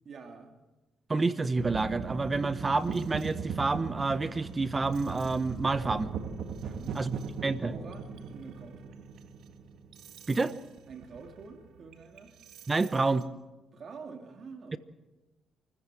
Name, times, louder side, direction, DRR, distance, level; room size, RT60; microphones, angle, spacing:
voice 1, 0.0-0.5 6.6-7.2 7.6-9.1 10.9-12.3 13.7-14.8, right 5 dB, 50° right, 4 dB, 2.9 m, -47 dB
voice 2, 1.1-6.1 6.9-7.1 7.4-7.7 10.3-10.5 12.7-13.3, right 3 dB, 25° right, 13 dB, 1.1 m, -28 dB
sound 1, 1.6-13.2, right 5 dB, 70° right, 1.9 m, -39 dB
28.0 x 14.5 x 7.8 m, 1.1 s
cardioid pair, 90°, 0 cm